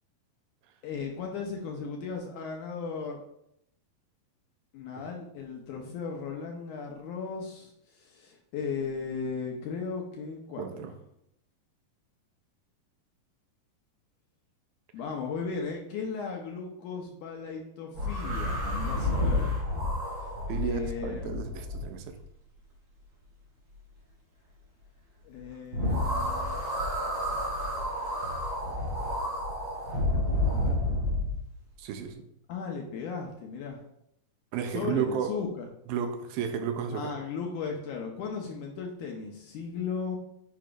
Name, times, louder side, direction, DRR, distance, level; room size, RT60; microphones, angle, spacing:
voice 1, 0.8-3.2 4.7-10.9 14.9-19.6 20.6-21.5 25.3-26.6 30.5-30.8 32.5-33.8 34.7-35.7 36.9-40.2, left 5 dB, 75° left, 1 dB, 1.9 m, -36 dB
voice 2, 10.6-10.9 20.5-22.2 31.8-32.2 34.5-35.3 35.9-37.1, right 8 dB, 85° right, 7 dB, 2.5 m, -32 dB
sound 1, 17.9-22.2 25.7-31.4, left 1 dB, 45° right, 2.5 m, -30 dB
8.5 x 5.8 x 2.5 m, 0.76 s
omnidirectional pair, 4.2 m